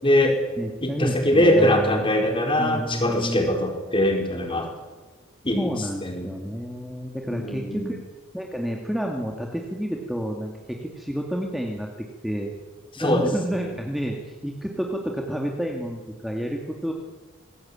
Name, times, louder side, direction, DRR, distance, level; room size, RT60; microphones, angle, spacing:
voice 1, 0.0-0.4 0.8-4.7 5.4-6.4 7.3-7.9 12.9-13.3, left 1 dB, 25° left, 3 dB, 4.8 m, -22 dB
voice 2, 0.6-2.1 2.6-3.5 5.6-8.0 8.3-11.9 12.2-12.5 13.0-16.9, equal, ahead, 1 dB, 2.3 m, -30 dB
26.0 x 20.0 x 8.9 m, 1.3 s
head